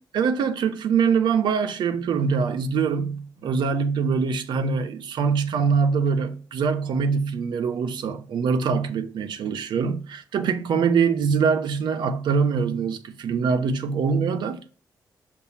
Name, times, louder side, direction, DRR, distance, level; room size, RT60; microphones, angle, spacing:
voice 1, 0.1-14.6, right 5 dB, 80° right, 0.8 m, -23 dB
6.9 x 2.7 x 5.5 m
cardioid pair, 120°, 8 cm